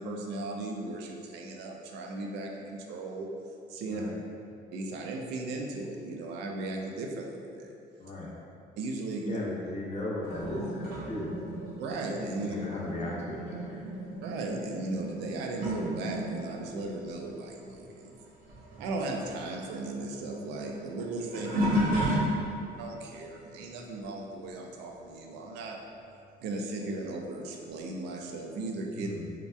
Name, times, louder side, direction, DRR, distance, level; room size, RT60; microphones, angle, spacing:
voice 1, 0.0-3.3 3.7-4.0 4.7-7.7 8.8-9.4 11.8-12.5 14.2-18.1 18.8-21.5 22.8-25.8 26.4-29.1, right 2 dB, 85° right, 1 dB, 0.4 m, -36 dB
voice 2, 8.0-8.3 9.3-11.4 12.4-13.8 21.3-21.4 21.7-22.1 28.9-29.3, left 1 dB, 40° left, -5 dB, 0.7 m, -37 dB
sound 1, 10.2-18.2 18.5-22.8 23.4-23.8 26.0-26.1 27.0-27.1, equal, 65° right, 0.8 m, -34 dB
2.7 x 2.2 x 3.2 m, 2.5 s
cardioid pair, 110°, 17 cm